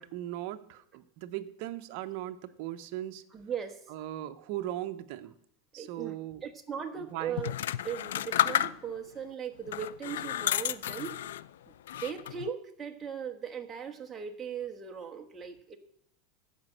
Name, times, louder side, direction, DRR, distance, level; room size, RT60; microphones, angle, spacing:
voice 1, 0.0-3.2 3.9-5.3 5.7-6.4 7.0-7.4, right 13 dB, 55° right, 8 dB, 0.8 m, -38 dB
voice 2, 3.3-3.8 5.8-6.2 6.4-7.5 7.8-11.1 11.9-15.8, right 7 dB, 15° right, 2 dB, 1.3 m, -38 dB
sound 1, 7.4-9.1 9.7-11.5 11.9-12.5, left 11 dB, 90° left, 0.4 m, -31 dB
14.0 x 5.2 x 7.8 m, 0.75 s
supercardioid pair, 140°, 0 cm